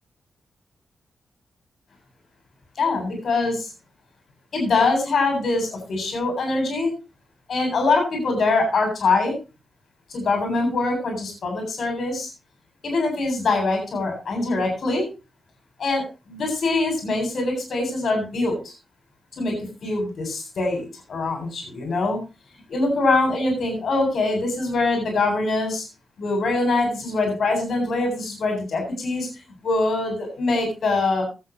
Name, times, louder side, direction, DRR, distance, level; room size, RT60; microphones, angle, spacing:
voice 1, 2.8-3.7 4.5-6.9 7.5-9.3 10.1-12.3 12.8-15.0 15.8-18.7 19.3-22.2 22.7-25.9 26.2-29.3 29.6-31.3, left 3 dB, 60° left, 3 dB, 7.9 m, -23 dB
17.0 x 12.0 x 3.1 m, 0.31 s
wide cardioid pair, 170°, 0 cm